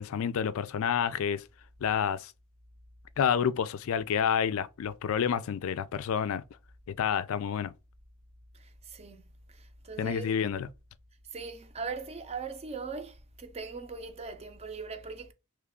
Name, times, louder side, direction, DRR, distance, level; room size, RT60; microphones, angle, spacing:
voice 1, 0.0-1.4 1.8-2.3 3.2-6.4 6.9-7.7 10.0-10.7, left 7 dB, 70° left, 0.3 m, -29 dB
voice 2, 8.5-10.3 11.3-15.3, right 4 dB, 30° right, 0.5 m, -40 dB
3.1 x 2.3 x 3.5 m
head